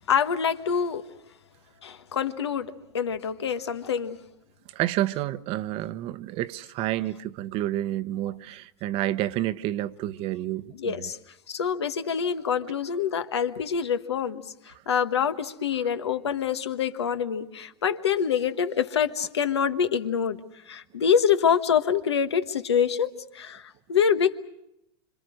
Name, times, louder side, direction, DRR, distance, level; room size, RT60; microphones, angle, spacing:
voice 1, 0.1-1.0 1.8-4.2 10.8-11.2 11.5-20.4 20.7-24.4, left 7 dB, 90° left, 1.4 m, -26 dB
voice 2, 4.7-11.1, right 14 dB, 45° right, 0.8 m, -29 dB
26.5 x 25.0 x 6.4 m
hypercardioid pair, 115°, 14 cm